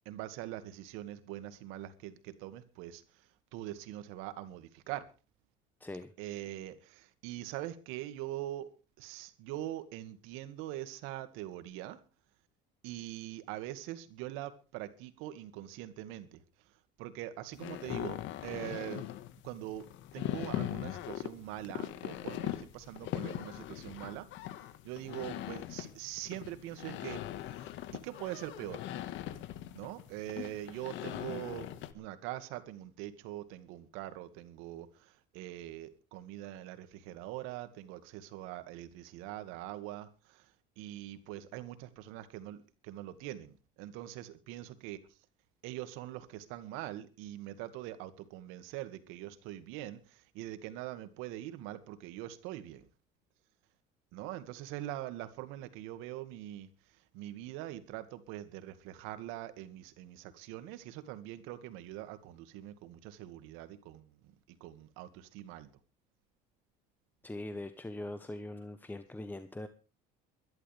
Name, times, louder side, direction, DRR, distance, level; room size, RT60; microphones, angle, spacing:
voice 1, 0.1-5.1 6.2-8.7 9.0-12.0 12.8-16.7 17.0-19.1 19.4-19.9 20.1-24.3 24.8-27.2 27.5-27.7 28.0-28.9 29.7-31.7 31.9-45.0 45.6-52.9 54.1-65.7, right 14 dB, 80° right, 2.2 m, -43 dB
voice 2, 5.8-6.1 67.2-69.7, left 2 dB, 10° left, 1.2 m, -42 dB
sound 1, 17.5-31.9, left 13 dB, 65° left, 1.7 m, -41 dB
23.0 x 12.0 x 3.5 m
cardioid pair, 110°, 21 cm